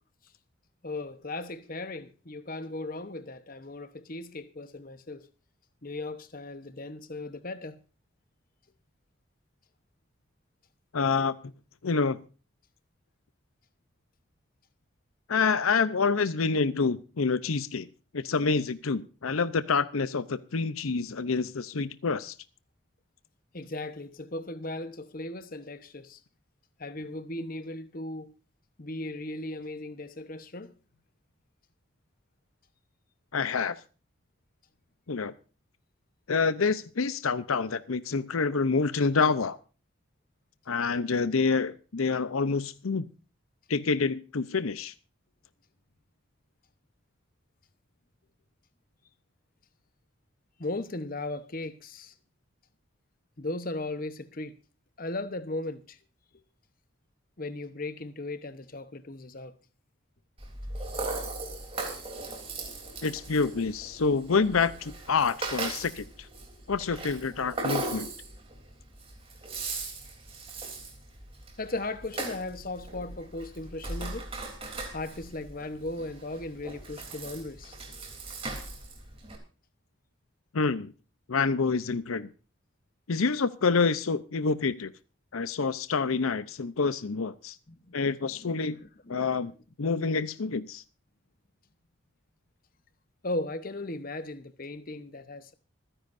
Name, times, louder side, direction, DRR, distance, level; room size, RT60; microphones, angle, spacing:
voice 1, 0.8-5.3 5.8-7.8 23.5-26.2 26.8-28.3 28.8-30.7 50.6-52.1 53.4-54.5 55.0-56.0 57.4-59.5 71.6-74.2 74.9-77.7 87.7-88.0 88.4-89.4 93.2-95.5, left 2 dB, 40° left, 1.0 m, -37 dB
voice 2, 10.9-11.3 11.8-12.2 15.3-17.9 18.1-22.3 33.3-33.8 35.1-35.3 36.3-39.6 40.7-43.1 43.7-44.9 63.0-66.1 66.7-68.1 80.5-80.9 81.3-82.3 83.1-84.9 85.3-87.6 87.9-88.8 89.1-89.5 89.8-90.8, left 4 dB, 80° left, 0.7 m, -27 dB
Rattle (instrument), 60.4-79.4, right 2 dB, 25° right, 3.2 m, -38 dB
25.5 x 10.0 x 2.6 m
head